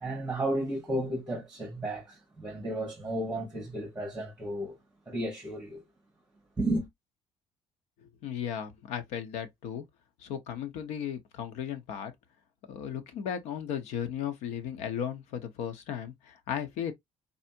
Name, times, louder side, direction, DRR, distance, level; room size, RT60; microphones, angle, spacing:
voice 1, 0.0-4.8 5.1-5.8 6.6-6.9, right 1 dB, 5° right, 1.7 m, -33 dB
voice 2, 8.2-9.8 10.2-12.1 12.7-16.9, left 8 dB, 85° left, 1.0 m, -35 dB
4.1 x 3.4 x 2.8 m
cardioid pair, 155°, 11 cm